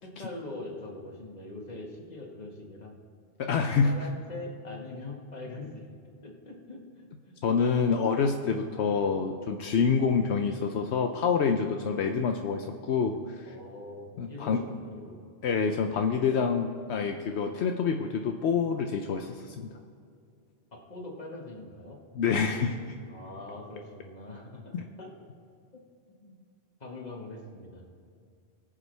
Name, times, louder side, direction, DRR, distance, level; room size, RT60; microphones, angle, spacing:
voice 1, 0.0-3.0 3.8-5.9 6.2-7.4 13.5-15.2 20.7-22.0 23.1-25.1 26.2-26.3 26.8-27.8, left 2 dB, 40° left, 0 dB, 1.8 m, -42 dB
voice 2, 3.4-4.0 7.4-13.5 14.2-14.6 15.4-19.7 22.2-22.9 24.7-24.8, left 5 dB, 80° left, 4 dB, 0.9 m, -27 dB
20.5 x 7.4 x 3.3 m, 2.3 s
omnidirectional pair, 1.1 m